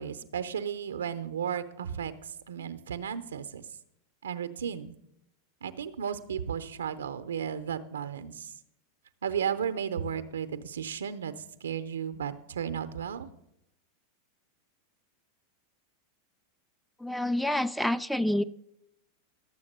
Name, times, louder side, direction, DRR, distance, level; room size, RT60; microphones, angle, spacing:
voice 1, 0.0-3.6 4.2-4.9 5.6-8.5 9.2-11.3 11.6-13.3, right 8 dB, 80° right, 12 dB, 0.7 m, -34 dB
voice 2, 17.0-18.4, left 1 dB, 5° left, 13 dB, 0.4 m, -27 dB
12.0 x 7.1 x 6.6 m, 0.80 s
hypercardioid pair, 95°, 0 cm